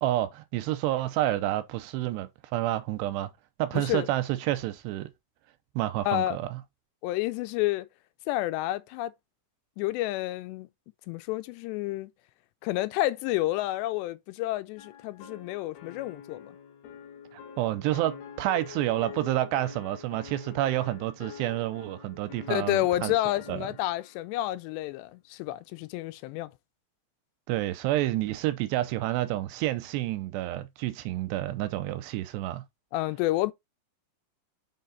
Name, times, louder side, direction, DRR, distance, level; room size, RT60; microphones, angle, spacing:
voice 1, 0.0-3.3 3.6-5.1 5.8-6.6 17.3-23.1 23.5-23.7 27.5-32.6, right 14 dB, 85° right, 2.9 m, -29 dB
voice 2, 3.7-4.1 6.1-6.4 7.0-7.9 8.3-9.1 9.8-10.7 11.1-12.1 12.6-16.6 22.5-26.5 32.9-33.5, left 16 dB, 85° left, 2.8 m, -29 dB
sound 1, 14.8-24.2, left 8 dB, 70° left, 2.6 m, -46 dB
6.4 x 4.7 x 4.0 m
omnidirectional pair, 4.9 m